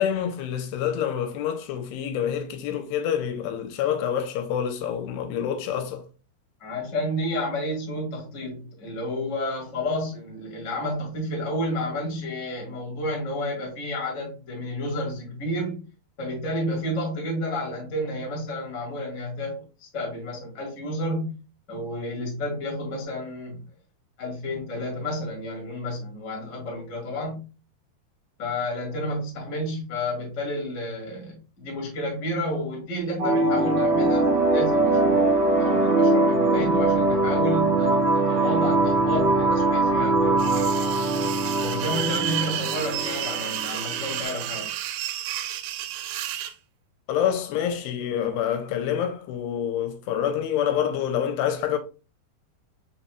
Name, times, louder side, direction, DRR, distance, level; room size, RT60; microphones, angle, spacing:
voice 1, 0.0-6.1 24.8-24.9 47.1-51.8, left 9 dB, 85° left, 2.7 m, -27 dB
voice 2, 6.6-15.9 16.2-21.3 21.7-23.7 24.2-27.4 28.4-35.3 35.6-40.4 41.6-44.7, left 1 dB, 60° left, 0.8 m, -31 dB
sound 1, 33.2-44.2, right 2 dB, 50° right, 1.2 m, -22 dB
sound 2, 40.4-46.5, right 11 dB, 85° right, 2.3 m, -31 dB
5.7 x 4.2 x 2.2 m
omnidirectional pair, 4.9 m